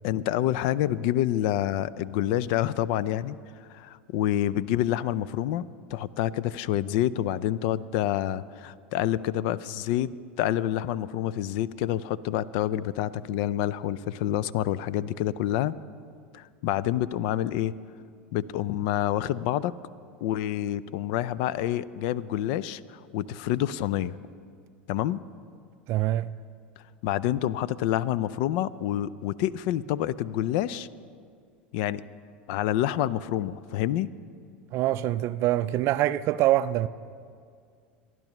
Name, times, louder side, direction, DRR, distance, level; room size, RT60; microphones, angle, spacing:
voice 1, 0.0-3.4 3.7-15.7 16.3-17.7 18.3-19.7 20.2-24.2 24.9-25.2 27.0-30.9 31.7-32.0 32.5-34.1, left 12 dB, 60° left, 0.4 m, -28 dB
voice 2, 25.9-26.3 34.7-36.9, right 14 dB, 50° right, 0.4 m, -24 dB
27.0 x 11.0 x 3.0 m
hypercardioid pair, 80°, 6 cm